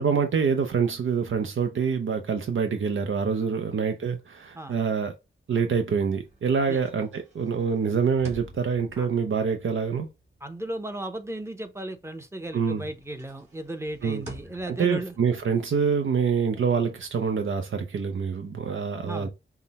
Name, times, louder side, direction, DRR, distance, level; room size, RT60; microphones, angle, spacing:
voice 1, 0.0-5.1 5.5-10.1 12.5-12.8 14.0-14.3 14.7-19.3, right 6 dB, 80° right, 0.6 m, -26 dB
sound 1, 5.7-12.1 12.4-17.8, right 1 dB, 35° right, 1.9 m, -50 dB
voice 2, 10.4-15.1 19.0-19.3, right 1 dB, 15° right, 0.7 m, -35 dB
5.7 x 2.1 x 4.0 m
wide cardioid pair, 125°, 20 cm